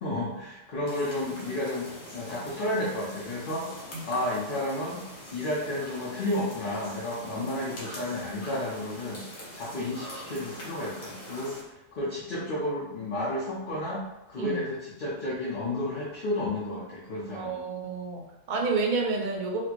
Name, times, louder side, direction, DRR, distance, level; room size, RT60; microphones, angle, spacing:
voice 1, 0.0-5.0 5.3-9.2 9.5-14.0 14.3-17.6, left 1 dB, 50° left, -7 dB, 0.8 m, -32 dB
sound 1, 0.9-11.6, equal, 75° left, 1.4 m, -44 dB
voice 2, 17.3-19.6, right 4 dB, 55° right, 0 dB, 0.6 m, -30 dB
4.2 x 2.0 x 2.9 m, 0.92 s
omnidirectional pair, 1.4 m